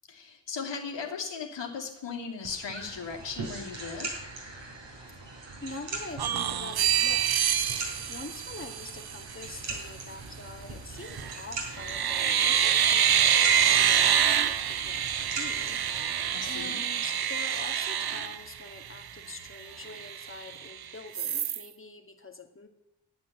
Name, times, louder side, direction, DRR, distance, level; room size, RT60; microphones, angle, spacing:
voice 1, 0.1-4.2 16.3-16.8, left 5 dB, 70° left, 1 dB, 2.7 m, -37 dB
sound 1, 2.4-16.7, right 3 dB, 75° right, 4.6 m, -41 dB
voice 2, 5.6-7.7 8.1-16.2 16.4-22.7, left 3 dB, 25° left, 4 dB, 2.3 m, -45 dB
sound 2, 6.2-9.2 11.0-11.4 11.8-19.0 19.5-19.6 19.8-20.7 21.1-21.6, right 9 dB, 55° right, 0.8 m, -26 dB
11.5 x 8.9 x 7.9 m, 0.88 s
cardioid pair, 45°, 45 cm